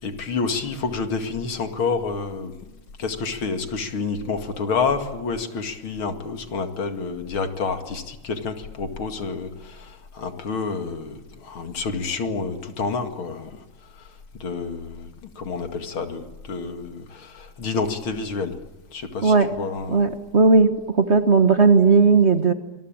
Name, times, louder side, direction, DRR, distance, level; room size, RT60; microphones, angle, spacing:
voice 1, 0.0-2.5 3.0-13.6 14.4-18.6 18.9-20.0, left 4 dB, 85° left, 7 dB, 3.0 m, -29 dB
voice 2, 19.2-19.5 19.9-22.5, right 4 dB, 35° right, 9 dB, 1.4 m, -16 dB
26.5 x 22.0 x 8.9 m, 1.1 s
omnidirectional pair, 2.2 m